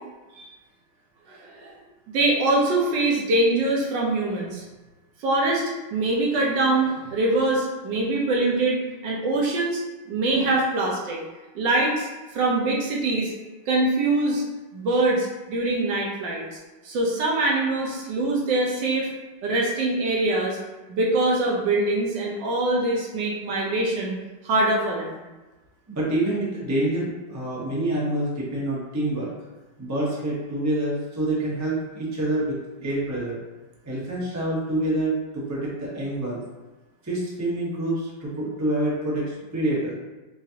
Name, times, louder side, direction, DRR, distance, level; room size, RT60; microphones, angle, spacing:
voice 1, 1.3-1.7 2.1-4.6 5.2-5.6 5.9-9.8 10.1-11.2 11.5-12.1 12.3-13.3 13.7-14.4 14.7-16.4 16.8-19.1 19.4-20.6 20.9-24.2 24.4-25.2, right 2 dB, 70° right, -2 dB, 1.4 m, -23 dB
voice 2, 25.9-29.3 29.8-33.4 33.8-36.4 37.0-39.9, right 1 dB, 20° right, -6 dB, 0.4 m, -27 dB
4.8 x 2.5 x 2.8 m, 1.2 s
omnidirectional pair, 2.1 m